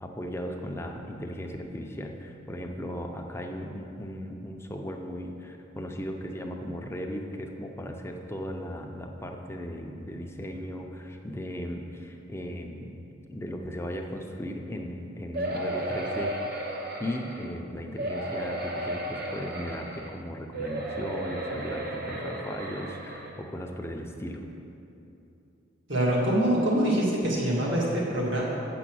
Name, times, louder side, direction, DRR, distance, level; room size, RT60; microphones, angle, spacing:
voice 1, 0.0-13.0 13.3-16.3 16.7-24.4, equal, 15° left, 2 dB, 0.6 m, -37 dB
sound 1, 15.3-17.5 18.0-20.1 20.5-23.4 24.0-24.1 24.3-24.4, right 1 dB, 50° right, 0.9 m, -34 dB
voice 2, 25.9-28.4, right 1 dB, 70° right, -5 dB, 1.9 m, -24 dB
7.9 x 6.9 x 6.2 m, 2.8 s
head